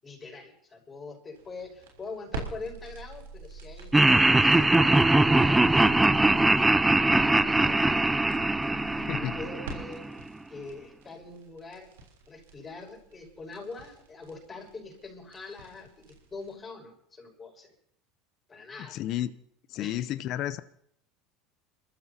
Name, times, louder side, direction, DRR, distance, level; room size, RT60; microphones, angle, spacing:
voice 1, 0.0-6.3 7.0-8.1 8.6-11.9 12.3-17.7 18.5-19.0 19.8-20.1, left 3 dB, 25° left, 0 dB, 5.7 m, -44 dB
sound 1, 1.3-16.5, right 4 dB, 85° right, 3.4 m, -44 dB
Laughter, 3.9-10.1, right 2 dB, 10° right, 0.5 m, -21 dB
voice 2, 18.9-19.4 19.7-20.6, left 12 dB, 55° left, 13 dB, 0.6 m, -31 dB
28.5 x 14.0 x 2.8 m, 0.71 s
hypercardioid pair, 80°, 0 cm